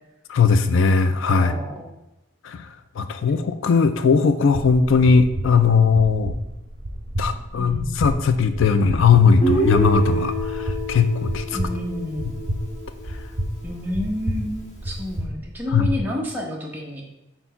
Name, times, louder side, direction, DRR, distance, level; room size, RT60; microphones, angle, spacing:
voice 1, 0.3-1.5 2.4-2.7 3.0-6.3 7.2-11.4 15.7-15.9, left 5 dB, 70° left, 10 dB, 0.4 m, -18 dB
voice 2, 1.4-1.9 7.5-8.2 11.5-12.4 13.6-17.1, left 1 dB, 10° right, -2 dB, 0.9 m, -30 dB
sound 1, 4.5-16.0, equal, 70° right, 0.9 m, -31 dB
Guitar, 9.4-13.4, right 1 dB, 35° left, 1.5 m, -26 dB
4.4 x 3.9 x 5.6 m, 0.90 s
head